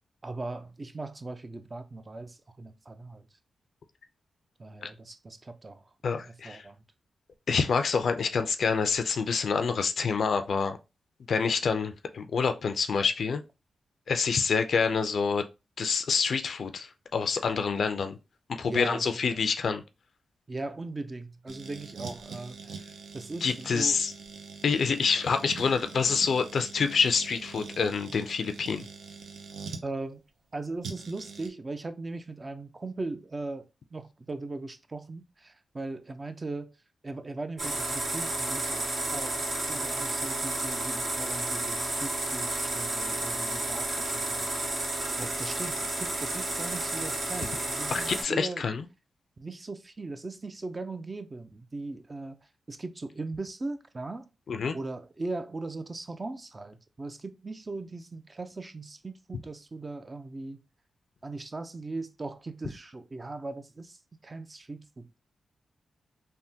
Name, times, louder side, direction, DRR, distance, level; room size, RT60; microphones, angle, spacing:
voice 1, 0.2-3.3 4.6-6.8 18.7-19.4 20.5-24.0 29.8-30.2 30.5-33.6 33.9-36.7 37.0-38.8 39.1-44.5 45.2-48.7 49.4-52.4 52.7-54.3 54.7-60.6 61.2-64.0 64.2-65.2, right 3 dB, 35° right, 0.4 m, -39 dB
voice 2, 6.0-6.6 7.5-10.8 11.3-13.4 14.1-15.4 15.8-18.2 18.6-19.8 23.4-24.1 24.6-28.8 47.9-48.8 54.5-54.8, left 5 dB, 70° left, 0.4 m, -27 dB
sound 1, 21.5-29.9 30.8-31.5, right 5 dB, 85° right, 0.5 m, -44 dB
sound 2, 37.6-48.2, right 2 dB, 70° right, 1.8 m, -31 dB
3.4 x 2.2 x 2.7 m
cardioid pair, 65°, 0 cm